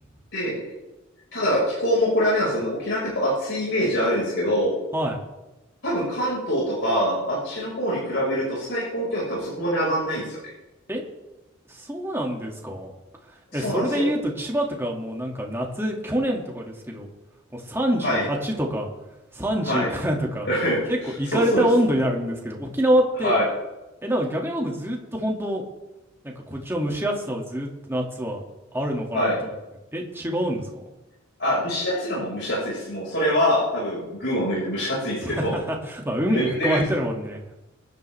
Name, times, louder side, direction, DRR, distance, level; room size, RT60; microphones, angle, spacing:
voice 1, 1.3-4.7 5.8-10.4 13.5-14.1 18.0-18.2 19.7-19.9 20.4-21.6 23.2-23.5 29.1-29.4 31.4-35.5 36.3-36.8, equal, 60° left, -6 dB, 5.2 m, -24 dB
voice 2, 11.7-12.9 13.5-17.1 17.5-18.9 19.3-20.5 20.9-23.3 24.0-25.6 26.2-28.4 28.7-29.5 29.9-30.8 35.2-37.4, equal, 10° right, -1 dB, 2.2 m, -26 dB
23.0 x 11.0 x 3.5 m, 1.0 s
head